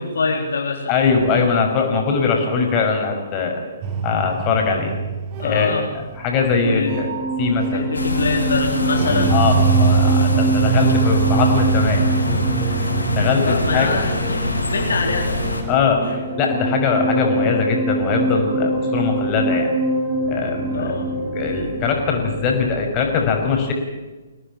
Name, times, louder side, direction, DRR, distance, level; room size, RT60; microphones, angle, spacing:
voice 1, 0.0-0.9 5.4-5.9 6.6-6.9 7.7-9.3 13.4-15.4 16.0-16.2 20.7-21.1, left 4 dB, 65° left, 2 dB, 3.7 m, -24 dB
voice 2, 0.9-3.6 4.0-4.9 5.4-5.8 6.2-7.1 7.4-7.8 9.3-12.4 12.6-14.0 15.7-19.7 20.3-20.9 21.3-23.7, left 5 dB, 30° left, 3 dB, 6.1 m, -21 dB
sound 1, 3.8-22.6, right 3 dB, 35° right, 3.5 m, -23 dB
sound 2, 7.9-15.6, left 2 dB, 80° left, 7.2 m, -25 dB
24.0 x 18.0 x 9.0 m, 1.2 s
figure-of-eight pair, 125°, 0 cm